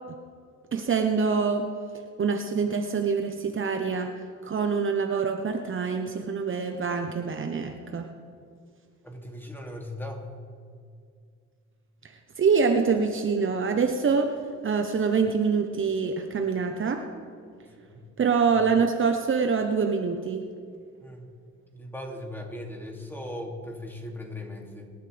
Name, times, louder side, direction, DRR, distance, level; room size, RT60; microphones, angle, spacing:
voice 1, 0.7-1.7 2.2-8.1 12.0-14.4 14.6-17.1 18.2-20.4, right 5 dB, 40° right, 5 dB, 1.0 m, -25 dB
voice 2, 9.0-10.3 17.8-18.1 21.0-21.3 21.7-24.9, left 1 dB, 5° left, 0 dB, 2.8 m, -38 dB
24.5 x 11.5 x 3.5 m, 2.3 s
cardioid pair, 90°, 30 cm